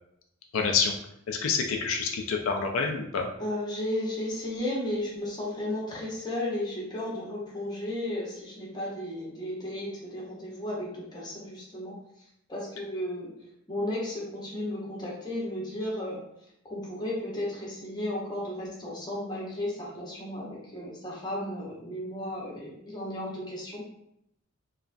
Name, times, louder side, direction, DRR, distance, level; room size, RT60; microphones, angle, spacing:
voice 1, 0.5-0.9 1.3-3.3, left 5 dB, 85° left, 3 dB, 0.4 m, -27 dB
voice 2, 3.4-12.0 12.5-13.3 13.7-16.2 16.6-23.9, left 1 dB, 20° left, -5 dB, 0.8 m, -34 dB
2.9 x 2.3 x 2.4 m, 0.77 s
head